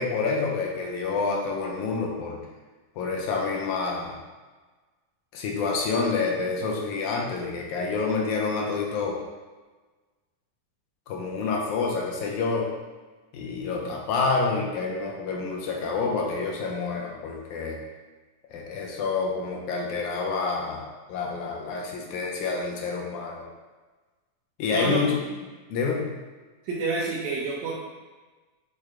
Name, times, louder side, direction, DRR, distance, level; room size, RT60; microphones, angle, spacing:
voice 1, 0.0-2.4 3.0-4.2 5.3-9.2 11.1-12.7 13.3-17.8 18.5-23.4 24.6-25.2 25.7-26.1, left 4 dB, 80° left, -1 dB, 2.0 m, -28 dB
voice 2, 24.7-25.0 26.6-27.7, right 3 dB, 75° right, -6 dB, 1.8 m, -28 dB
6.4 x 2.2 x 3.6 m, 1.3 s
omnidirectional pair, 3.6 m